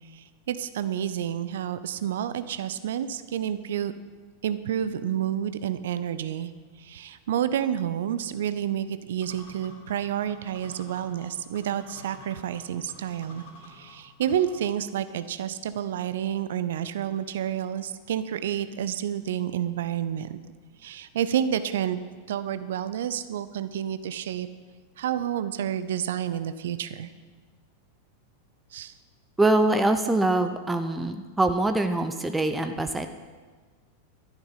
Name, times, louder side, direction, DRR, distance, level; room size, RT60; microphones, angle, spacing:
voice 1, 0.1-3.9 4.4-6.5 6.8-20.3 20.8-22.0 22.3-24.5 25.0-27.1 28.7-28.9, right 10 dB, 60° right, 13 dB, 0.6 m, -29 dB
sound 1, 9.2-14.8, left 1 dB, 55° left, 2.7 m, -49 dB
voice 2, 29.4-33.1, right 2 dB, 10° right, 8 dB, 0.7 m, -24 dB
12.5 x 11.0 x 5.7 m, 1.4 s
figure-of-eight pair, 90°, 0 cm